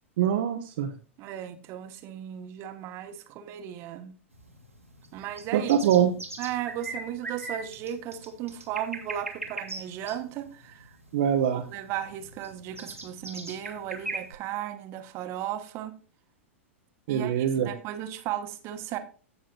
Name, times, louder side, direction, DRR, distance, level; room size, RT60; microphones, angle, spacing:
voice 1, 0.2-0.9 5.5-6.1 11.1-11.6 17.1-17.7, right 9 dB, 55° right, 3 dB, 0.9 m, -23 dB
voice 2, 1.2-4.1 5.1-5.8 6.4-11.0 11.5-15.9 17.1-19.0, right 11 dB, 35° right, 8 dB, 1.3 m, -36 dB
sound 1, 4.3-14.3, right 2 dB, 90° right, 1.8 m, -40 dB
16.0 x 6.3 x 2.4 m, 0.37 s
figure-of-eight pair, 100°, 7 cm